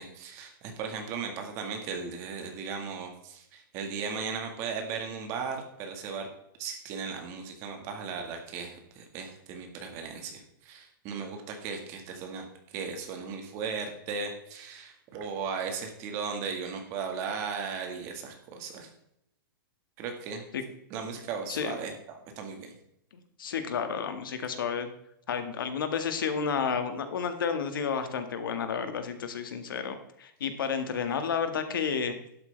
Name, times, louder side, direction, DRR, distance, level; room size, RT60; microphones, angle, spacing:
voice 1, 0.0-6.3 6.6-12.5 12.7-18.9 20.0-20.4 20.9-21.9 22.4-22.7, right 5 dB, 25° right, 4 dB, 1.8 m, -36 dB
voice 2, 23.4-24.9 25.3-32.1, left 6 dB, 75° left, 8 dB, 2.0 m, -31 dB
12.0 x 11.0 x 3.4 m, 0.76 s
hypercardioid pair, 175°, 11 cm